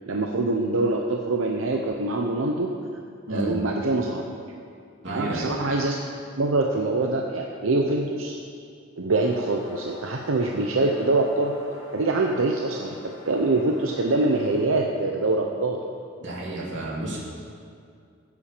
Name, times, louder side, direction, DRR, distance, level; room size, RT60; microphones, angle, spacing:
voice 1, 0.1-2.7 3.3-4.2 5.1-5.9 6.4-8.4 9.0-11.5 11.9-15.8, right 2 dB, 90° right, 1 dB, 0.8 m, -24 dB
voice 2, 5.0-5.6 16.2-17.2, right 1 dB, 65° right, -5 dB, 3.1 m, -30 dB
sound 1, 9.1-14.6, left 1 dB, 60° left, 2.7 m, -44 dB
15.5 x 8.4 x 5.1 m, 2.3 s
head